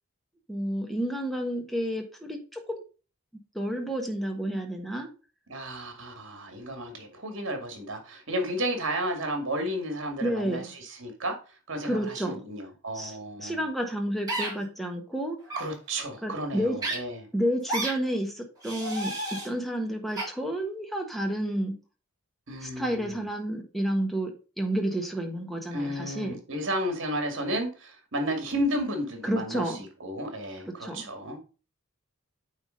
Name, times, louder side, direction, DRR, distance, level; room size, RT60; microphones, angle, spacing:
voice 1, 0.5-2.8 3.5-5.1 10.2-10.7 11.8-12.4 12.9-15.4 16.2-16.8 17.3-21.8 22.6-26.4 29.2-29.8 30.8-31.0, equal, ahead, 3 dB, 1.3 m, -30 dB
voice 2, 5.5-11.4 11.7-13.7 15.6-17.2 22.5-23.2 25.7-31.4, equal, 60° right, 5 dB, 2.3 m, -32 dB
sound 1, 14.3-14.5 15.4-15.6 16.8-17.0 17.7-17.9 18.6-19.5 20.2-20.3, right 1 dB, 15° right, 3.0 m, -31 dB
9.0 x 3.6 x 5.2 m, 0.34 s
head